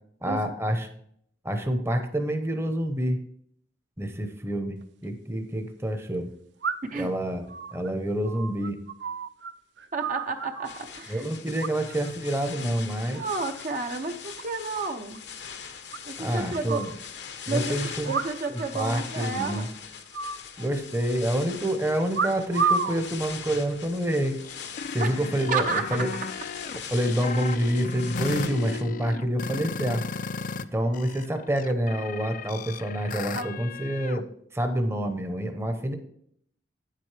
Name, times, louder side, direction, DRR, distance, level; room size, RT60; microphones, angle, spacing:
voice 1, 0.2-0.9 1.4-3.2 4.0-4.8 5.0-6.3 6.9-7.4 7.7-8.8 11.1-13.2 16.2-16.9 17.5-18.1 18.5-19.7 20.6-24.4 24.9-26.1 26.9-30.0 30.7-34.2 34.5-36.0, right 1 dB, 15° right, 6 dB, 0.8 m, -27 dB
sound 1, 4.8-4.9 6.6-7.1 7.5-9.5 9.8-10.8 11.6-12.1 12.4-12.8 13.2-13.8 14.0-14.1 14.4-14.5 14.7-14.8 15.1-15.2 15.9-17.0 18.0-18.7 18.9-19.0 19.3-19.7 20.1-21.1 22.1-23.0 23.7-24.1, right 5 dB, 85° right, 0.6 m, -31 dB
voice 2, 9.9-11.3 13.1-15.2 16.0-16.8 17.5-17.8 18.0-19.7 25.0-25.2 25.5-26.1 33.3-33.5, right 4 dB, 50° right, 5 dB, 0.7 m, -31 dB
sound 2, 10.6-28.8, left 7 dB, 75° left, 0.9 m, -41 dB
sound 3, 24.5-30.6 30.9-34.2, left 4 dB, 50° left, 0.4 m, -36 dB
9.3 x 7.6 x 3.3 m, 0.67 s
head